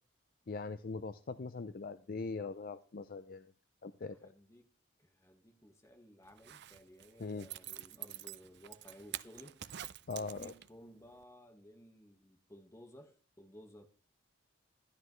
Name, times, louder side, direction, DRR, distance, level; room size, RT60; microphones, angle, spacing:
voice 1, 0.5-3.5 3.8-4.3 7.2-7.5 10.1-10.5, left 4 dB, 45° left, 0.5 m, -41 dB
voice 2, 4.2-4.7 5.0-9.6 10.1-13.9, equal, 15° left, 1.5 m, -57 dB
Zipper (clothing), 6.3-10.9 11.2-11.3, right 13 dB, 50° right, 0.5 m, -47 dB
13.0 x 11.5 x 3.2 m
head